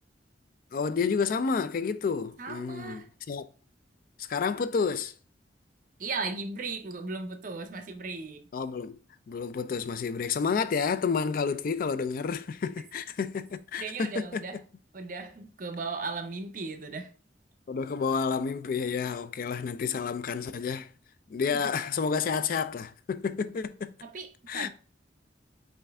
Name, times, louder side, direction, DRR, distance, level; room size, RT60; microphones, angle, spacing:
voice 1, 0.7-3.5 4.2-5.1 8.5-9.0 9.3-14.6 17.7-20.9 21.3-23.9 24.5-24.7, left 5 dB, 50° left, 0.3 m, -30 dB
voice 2, 2.4-3.1 6.0-8.4 13.8-14.6 14.9-17.1 21.5-21.6 24.0-24.7, right 4 dB, 45° right, 0.6 m, -36 dB
5.5 x 2.6 x 3.4 m
head